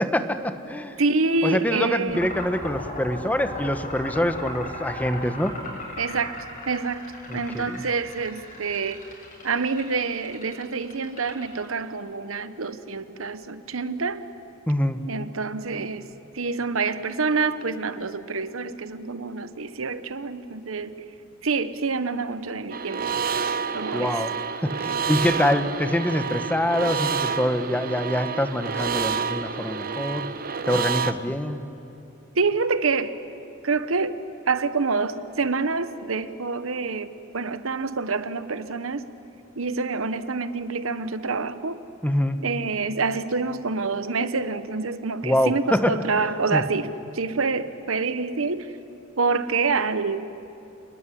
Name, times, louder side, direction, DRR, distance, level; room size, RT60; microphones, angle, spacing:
voice 1, 0.0-1.0 1.4-5.5 7.3-7.8 14.7-15.0 23.9-24.4 24.6-30.3 30.7-31.6 42.0-42.4 45.2-46.6, left 1 dB, 5° left, 9 dB, 1.1 m, -25 dB
voice 2, 1.0-2.2 6.0-6.4 6.7-7.0 7.3-9.0 9.4-14.2 15.1-16.1 16.3-21.0 21.4-23.0 23.7-24.2 32.3-33.1 33.6-34.2 34.5-39.0 39.6-41.8 42.4-48.7 49.2-50.3, right 4 dB, 70° right, 12 dB, 1.0 m, -27 dB
sound 1, 2.1-11.8, left 1 dB, 40° left, 7.5 m, -37 dB
sound 2, 22.7-31.1, right 6 dB, 45° right, 1.0 m, -28 dB
29.0 x 20.5 x 9.9 m, 2.7 s
head